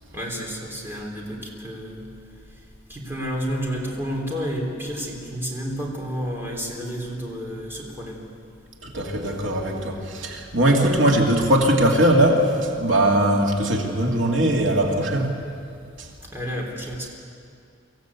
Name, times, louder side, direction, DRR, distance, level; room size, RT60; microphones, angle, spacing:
voice 1, 0.1-2.0 2.9-8.2 16.3-17.1, equal, 10° right, -1 dB, 3.5 m, -30 dB
voice 2, 8.8-15.4 16.0-16.1, right 1 dB, 80° right, 0 dB, 2.4 m, -20 dB
24.0 x 15.5 x 8.3 m, 2.4 s
head